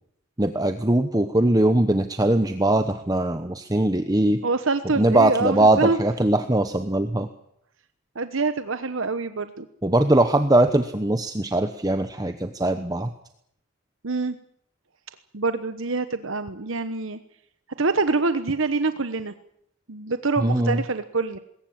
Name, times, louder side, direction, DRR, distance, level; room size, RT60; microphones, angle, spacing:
voice 1, 0.4-4.4 5.0-7.3 9.8-13.1 20.4-20.8, right 1 dB, 15° right, 8 dB, 1.0 m, -21 dB
voice 2, 4.4-6.0 8.1-9.7 14.0-14.4 15.3-17.2 17.8-19.3 19.9-21.4, right 3 dB, 60° right, 11 dB, 1.1 m, -25 dB
21.0 x 18.0 x 8.7 m, 0.72 s
head